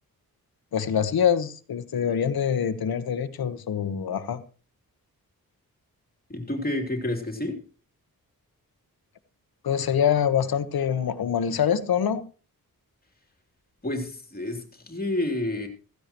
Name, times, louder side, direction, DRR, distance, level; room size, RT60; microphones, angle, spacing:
voice 1, 0.7-4.4 9.6-12.2, left 8 dB, 90° left, 1.2 m, -25 dB
voice 2, 6.3-7.6 13.8-15.7, left 1 dB, 25° left, 3.1 m, -29 dB
15.5 x 15.5 x 3.0 m
wide cardioid pair, 125°, 35 cm